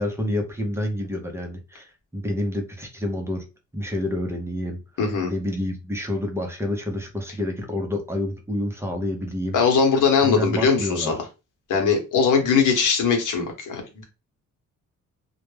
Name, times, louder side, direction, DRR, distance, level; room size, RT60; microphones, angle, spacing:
voice 1, 0.0-3.4 3.7-4.8 5.3-9.6 10.2-11.1, left 1 dB, 10° right, 2 dB, 0.5 m, -28 dB
voice 2, 5.0-5.3 9.5-11.2 11.7-14.0, left 5 dB, 75° left, 3 dB, 0.9 m, -20 dB
2.2 x 2.0 x 3.1 m, 0.28 s
cardioid pair, 140°, 31 cm